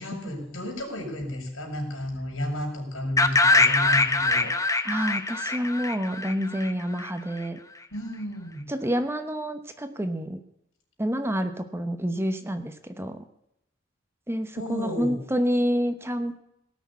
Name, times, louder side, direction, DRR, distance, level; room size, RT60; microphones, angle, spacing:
voice 1, 0.0-4.8 7.9-8.7 14.6-15.2, left 1 dB, 85° left, 1 dB, 5.1 m, -33 dB
sound 1, 3.2-7.0, left 3 dB, 15° left, 0.9 m, -23 dB
voice 2, 4.8-7.6 8.7-10.4 11.0-13.2 14.3-16.3, equal, 10° right, 8 dB, 0.9 m, -28 dB
18.0 x 6.4 x 8.3 m, 0.78 s
head